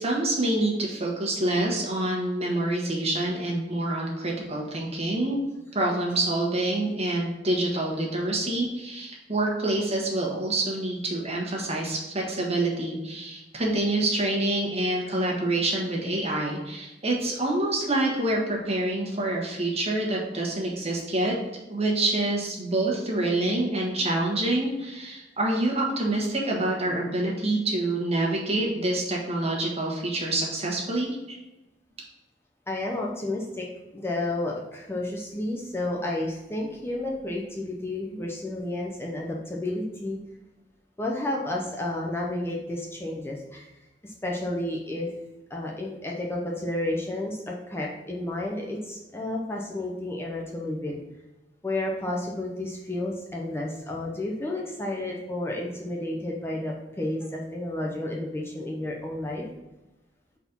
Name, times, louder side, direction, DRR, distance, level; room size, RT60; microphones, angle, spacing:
voice 1, 0.0-5.4 5.7-21.3 21.7-31.4, right 2 dB, 35° right, -2 dB, 1.4 m, -27 dB
voice 2, 32.7-33.7 33.9-40.2 41.0-43.7 44.0-45.1 45.5-51.0 51.6-59.5, left 1 dB, 15° left, -2 dB, 0.6 m, -31 dB
4.3 x 4.1 x 5.4 m, 1.0 s
head